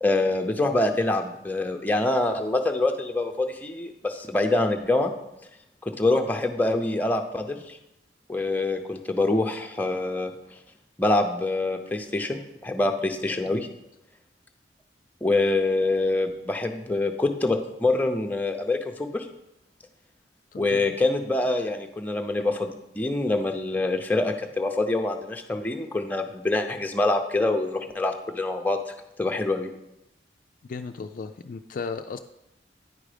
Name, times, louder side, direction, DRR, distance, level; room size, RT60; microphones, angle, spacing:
voice 1, 0.0-5.1 6.0-7.8 8.3-10.3 11.0-13.7 15.2-19.3 20.6-28.8 29.2-29.7, left 2 dB, 10° left, 4 dB, 0.6 m, -25 dB
voice 2, 20.5-21.0 30.6-32.2, left 4 dB, 50° left, 7 dB, 0.3 m, -36 dB
9.6 x 5.0 x 5.0 m, 0.87 s
head